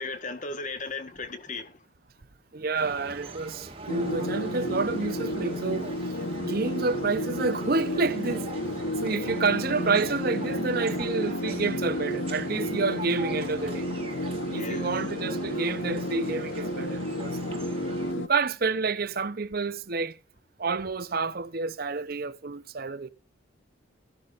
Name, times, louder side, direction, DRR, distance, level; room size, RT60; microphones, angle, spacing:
voice 1, 0.0-1.8 14.5-15.0, left 3 dB, 35° left, 1.3 m, -36 dB
voice 2, 2.5-5.9 6.4-8.5 9.0-13.9 14.5-17.4 18.1-20.2 20.6-23.1, right 4 dB, 45° right, 0.7 m, -29 dB
sound 1, 2.7-18.1, right 2 dB, 30° right, 2.0 m, -42 dB
sound 2, 3.9-18.3, equal, 65° left, 0.9 m, -32 dB
14.0 x 12.0 x 2.5 m
head